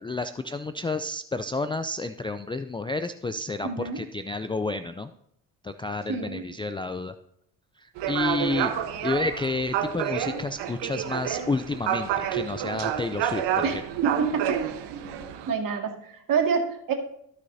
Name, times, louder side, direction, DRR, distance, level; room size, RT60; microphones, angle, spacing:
voice 1, 0.0-5.1 5.6-7.1 7.8-8.7 9.0-13.8, left 3 dB, 10° left, 9 dB, 0.4 m, -30 dB
voice 2, 3.6-4.0 6.1-6.5 13.6-14.6 15.5-16.9, right 6 dB, 50° right, 3 dB, 2.1 m, -27 dB
sound 1, 8.0-15.5, right 9 dB, 70° right, 1.2 m, -29 dB
14.5 x 6.6 x 2.7 m, 0.72 s
supercardioid pair, 75°, 44 cm